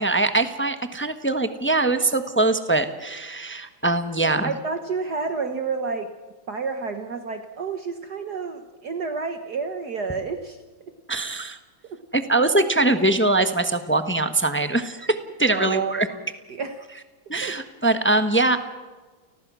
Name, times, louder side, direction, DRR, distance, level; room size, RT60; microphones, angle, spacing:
voice 1, 0.0-4.5 11.1-11.6 12.1-16.1 17.3-18.6, right 2 dB, 10° left, 9 dB, 0.8 m, -22 dB
voice 2, 4.2-6.1 6.5-10.6 11.9-12.0 15.5-16.0 16.5-16.8 17.4-17.5, right 4 dB, 55° right, 7 dB, 1.7 m, -29 dB
29.5 x 20.0 x 6.3 m, 1.3 s
omnidirectional pair, 2.3 m